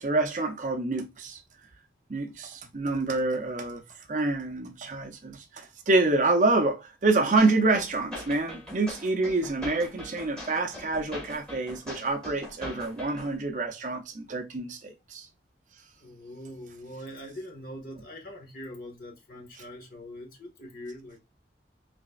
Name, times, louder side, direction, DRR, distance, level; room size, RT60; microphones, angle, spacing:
voice 1, 0.0-1.4 2.1-3.8 4.1-15.3, right 2 dB, 45° right, 0.6 m, -27 dB
sound 1, 7.4-13.3, left 1 dB, 5° left, 1.5 m, -42 dB
voice 2, 16.0-21.2, equal, 50° left, 1.4 m, -42 dB
4.0 x 3.4 x 2.3 m
head